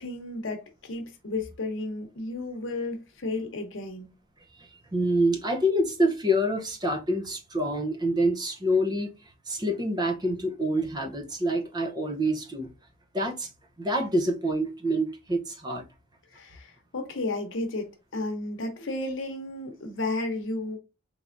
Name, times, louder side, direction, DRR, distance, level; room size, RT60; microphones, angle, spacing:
voice 1, 0.0-4.1 16.3-20.8, left 2 dB, 65° left, 0.9 m, -33 dB
voice 2, 4.6-9.1 9.5-12.7 13.1-13.5 13.8-15.8, equal, 20° right, 0.6 m, -26 dB
3.4 x 3.3 x 2.5 m
head